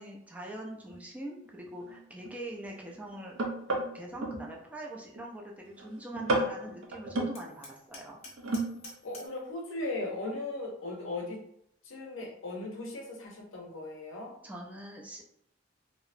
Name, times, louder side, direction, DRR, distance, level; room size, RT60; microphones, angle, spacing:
voice 1, 0.0-3.4 3.9-8.2 14.4-15.2, right 1 dB, 5° right, -1 dB, 0.3 m, -43 dB
sound 1, 0.9-1.0 1.4-4.5 4.9-5.3 5.7-5.9 6.1-7.4 8.3-8.9 9.2-9.3, right 2 dB, 75° right, 0.5 m, -33 dB
Hammer, 7.4-9.4, left 2 dB, 35° left, 0.6 m, -49 dB
voice 2, 9.0-11.4 11.8-14.3, left 2 dB, 75° left, 0 dB, 0.7 m, -37 dB
2.7 x 2.0 x 2.5 m, 0.74 s
head